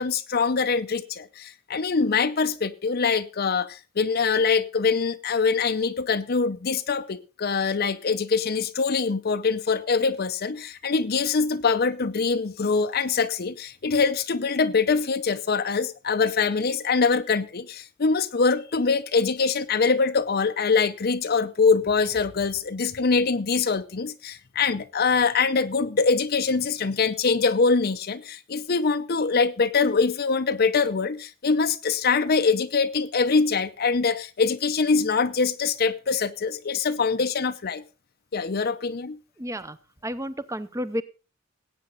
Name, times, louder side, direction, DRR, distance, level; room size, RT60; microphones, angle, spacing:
voice 1, 0.0-37.8 38.3-39.2, left 4 dB, 50° left, 0.6 m, -24 dB
voice 2, 39.4-39.8 40.0-41.0, equal, 15° right, 0.7 m, -31 dB
18.0 x 8.7 x 3.9 m
head